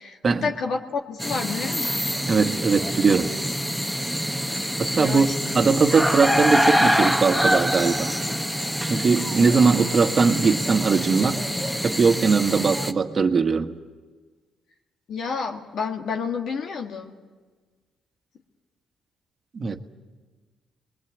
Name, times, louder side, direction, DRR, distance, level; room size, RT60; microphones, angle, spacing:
voice 1, 0.0-1.9 4.6-4.7 5.0-5.3 15.1-17.2, left 5 dB, 65° left, 2 dB, 1.9 m, -30 dB
sound 1, 1.2-12.9, equal, 5° left, 1.2 m, -25 dB
voice 2, 2.3-3.3 4.8-8.1 8.9-11.4 11.8-13.8 19.5-19.8, right 5 dB, 40° right, 7 dB, 1.4 m, -20 dB
24.5 x 22.0 x 8.1 m, 1.4 s
cardioid pair, 90°, 0 cm